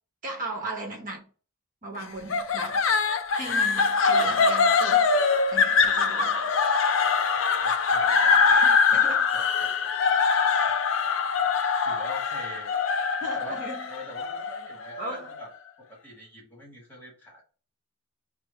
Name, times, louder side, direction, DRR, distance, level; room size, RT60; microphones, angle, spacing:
voice 1, 0.2-1.3 1.8-2.9 3.3-5.1 5.5-6.4 8.5-9.3 10.7-10.8 13.2-13.9 15.0-15.3, right 2 dB, 45° right, 1.1 m, -37 dB
sound 1, 2.3-15.5, left 5 dB, 85° left, 0.5 m, -23 dB
voice 2, 7.6-10.2 11.6-12.8 13.3-13.6 13.9-15.5 15.8-17.5, equal, 10° left, 1.5 m, -44 dB
6.0 x 2.1 x 3.2 m
head